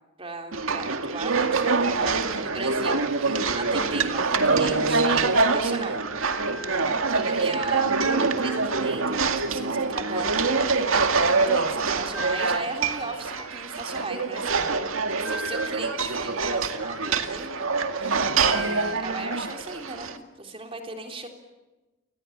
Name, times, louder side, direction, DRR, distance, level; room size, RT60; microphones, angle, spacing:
voice 1, 0.2-6.0 6.5-6.7 7.1-11.0 11.5-14.7 15.2-21.3, right 2 dB, 25° right, 4 dB, 3.6 m, -37 dB
sound 1, 0.5-20.2, right 4 dB, 85° right, 2.1 m, -25 dB
29.5 x 20.5 x 8.8 m, 1.1 s
head